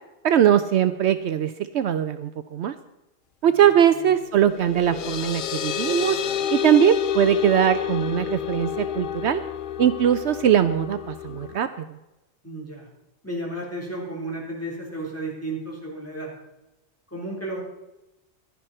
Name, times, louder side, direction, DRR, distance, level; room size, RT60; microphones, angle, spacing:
voice 1, 0.2-2.7 3.4-6.2 6.5-9.4 9.8-12.0, right 10 dB, 70° right, 11 dB, 0.9 m, -21 dB
voice 2, 3.6-4.1 12.4-12.9 13.2-16.3 17.1-17.6, right 1 dB, 10° left, -3 dB, 3.9 m, -33 dB
sound 1, 4.4-11.6, left 10 dB, 60° left, 0.6 m, -29 dB
16.0 x 11.5 x 4.4 m, 0.98 s
omnidirectional pair, 1.2 m